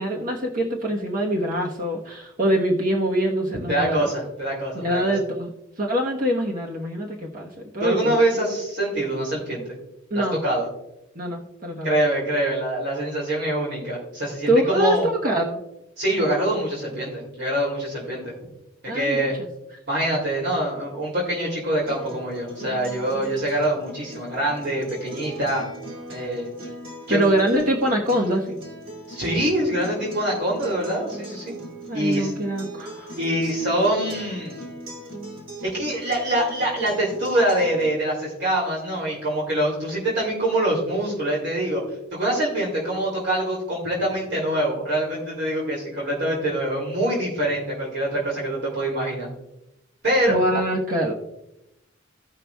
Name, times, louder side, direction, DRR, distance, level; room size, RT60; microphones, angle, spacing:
voice 1, 0.0-4.1 4.7-5.5 5.8-8.6 10.1-10.4 11.1-11.9 14.5-15.6 18.9-19.3 27.1-28.6 31.9-33.2 50.3-51.1, right 1 dB, 45° right, -1 dB, 1.1 m, -24 dB
voice 2, 3.7-5.1 7.8-9.6 10.1-10.7 11.8-15.0 16.0-18.3 18.8-19.4 19.9-25.6 26.1-26.5 27.1-27.2 29.1-31.5 31.9-32.3 33.2-34.6 35.6-41.8 42.1-49.3 50.0-50.4, right 1 dB, 60° right, -4 dB, 2.7 m, -24 dB
Acoustic guitar, 21.9-37.9, right 2 dB, 85° right, 3.0 m, -39 dB
17.0 x 5.8 x 2.3 m, 0.88 s
head